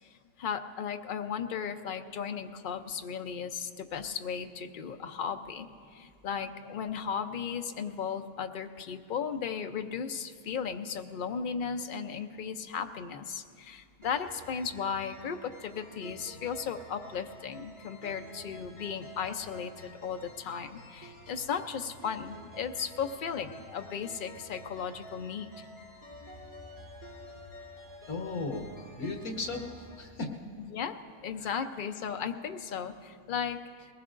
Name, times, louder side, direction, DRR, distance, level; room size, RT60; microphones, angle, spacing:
voice 1, 0.4-25.5 30.6-31.0 31.2-33.9, left 7 dB, 55° left, 7 dB, 0.6 m, -36 dB
sound 1, 14.0-30.0, equal, 15° right, 2.0 m, -50 dB
voice 2, 28.1-28.7 29.0-30.3 31.4-31.7, left 3 dB, 80° left, 2 dB, 1.8 m, -36 dB
21.5 x 19.5 x 2.5 m, 2.2 s
omnidirectional pair, 1.5 m